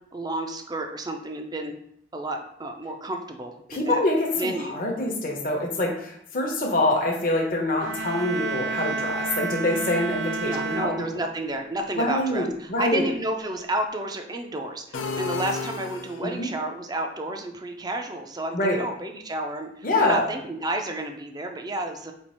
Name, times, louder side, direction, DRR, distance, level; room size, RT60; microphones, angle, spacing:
voice 1, 0.1-1.7 2.1-4.0 4.4-4.8 10.4-22.1, right 1 dB, 20° right, 4 dB, 0.4 m, -31 dB
voice 2, 3.7-10.9 11.9-13.0 16.2-16.5 18.5-18.8 19.8-20.3, left 1 dB, 50° left, 0 dB, 0.8 m, -25 dB
sound 1, 7.8-11.6, right 4 dB, 70° right, 0.5 m, -31 dB
sound 2, 14.9-16.5, left 4 dB, 85° left, 0.5 m, -32 dB
4.4 x 2.4 x 4.3 m, 0.70 s
head